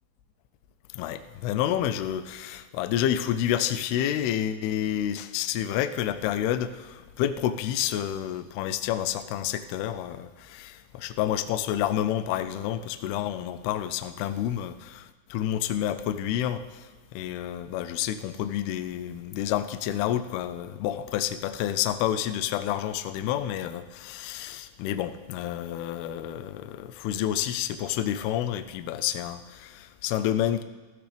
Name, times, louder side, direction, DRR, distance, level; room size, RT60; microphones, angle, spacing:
voice 1, 0.9-30.6, left 11 dB, 90° left, 10 dB, 2.2 m, -29 dB
15.5 x 15.0 x 3.4 m, 1.3 s
omnidirectional pair, 5.3 m